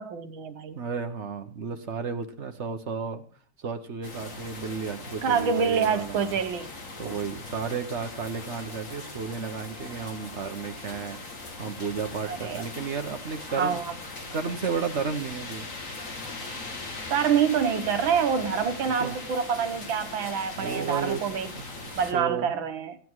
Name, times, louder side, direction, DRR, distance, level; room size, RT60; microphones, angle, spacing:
voice 1, 0.0-0.8 5.2-6.7 7.0-7.2 12.2-12.6 13.6-14.0 17.1-21.5 22.0-23.0, right 7 dB, 70° right, 9 dB, 1.8 m, -26 dB
voice 2, 0.7-3.2 3.6-6.4 7.0-11.2 11.6-13.8 14.3-15.7 18.9-19.2 20.6-22.5, right 6 dB, 45° right, 7 dB, 0.9 m, -33 dB
sound 1, 4.0-22.1, left 3 dB, 40° left, 2.2 m, -40 dB
16.0 x 9.3 x 4.6 m, 0.43 s
omnidirectional pair, 2.4 m